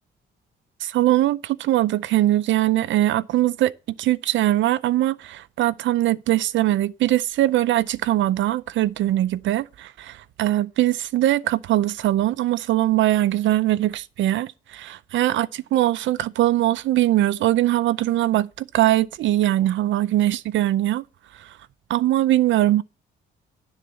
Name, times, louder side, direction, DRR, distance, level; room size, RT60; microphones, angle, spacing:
voice 1, 0.8-3.7 4.0-21.0 21.4-21.5 21.9-22.8, right 14 dB, 75° right, 0.5 m, -21 dB
11.5 x 4.0 x 7.4 m
cardioid pair, 90°, 20 cm